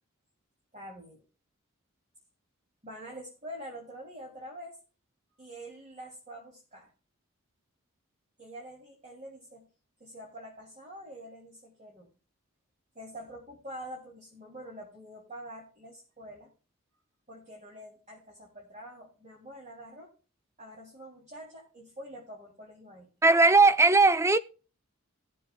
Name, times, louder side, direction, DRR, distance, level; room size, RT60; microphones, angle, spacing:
voice 1, 0.7-1.2 2.8-4.8 5.4-6.9 8.4-9.7 10.0-12.1 12.9-16.5 17.3-20.1 20.6-23.1, equal, 30° right, 2.9 m, -46 dB
voice 2, 23.2-24.4, right 3 dB, 10° right, 0.5 m, -19 dB
18.0 x 7.5 x 2.3 m
head